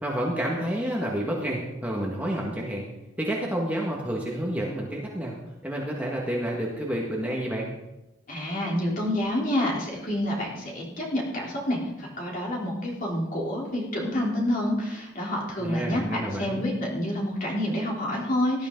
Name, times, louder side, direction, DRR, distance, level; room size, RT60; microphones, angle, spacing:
voice 1, 0.0-2.8 3.2-5.3 5.6-7.7 15.6-16.6, right 1 dB, 5° right, -3 dB, 1.8 m, -29 dB
voice 2, 8.3-18.7, left 1 dB, 40° left, -3 dB, 3.5 m, -28 dB
18.0 x 12.0 x 3.9 m, 0.95 s
head